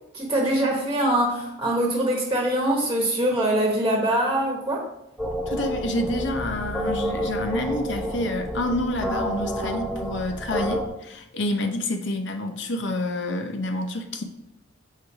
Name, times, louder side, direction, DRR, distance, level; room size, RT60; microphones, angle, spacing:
voice 1, 0.1-4.9, right 1 dB, 15° right, -1 dB, 1.2 m, -23 dB
sound 1, 5.2-10.9, equal, ahead, 0.8 m, -29 dB
voice 2, 5.5-14.2, left 1 dB, 65° left, 6 dB, 0.8 m, -28 dB
6.5 x 4.4 x 4.8 m, 0.82 s
head